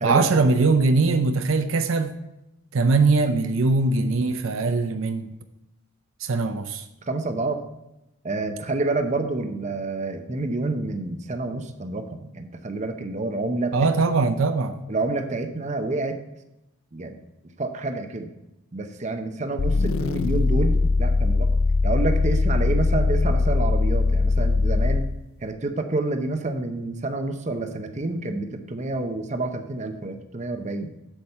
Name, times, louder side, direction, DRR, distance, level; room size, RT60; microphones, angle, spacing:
voice 1, 0.0-2.1 2.7-5.3 6.2-6.8 13.7-14.8, right 3 dB, 70° right, 0.6 m, -21 dB
voice 2, 7.1-7.6 8.2-13.9 14.9-16.2 16.9-17.2 17.6-18.3 18.7-21.5 21.8-25.0 25.4-30.9, right 2 dB, 35° right, 0.7 m, -28 dB
sound 1, 19.6-25.2, left 3 dB, 75° left, 0.4 m, -21 dB
8.0 x 7.3 x 4.3 m
head